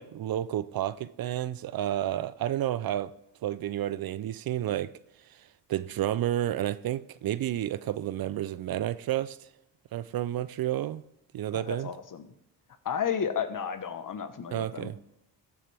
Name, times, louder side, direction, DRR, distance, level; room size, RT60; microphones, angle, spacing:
voice 1, 0.0-3.1 3.4-4.9 5.3-9.5 9.9-11.0 11.3-11.9 14.5-15.0, right 12 dB, 55° right, 0.5 m, -31 dB
voice 2, 11.5-12.3 12.8-14.9, left 7 dB, 45° left, 1.1 m, -32 dB
14.5 x 7.3 x 3.4 m
cardioid pair, 75°, 43 cm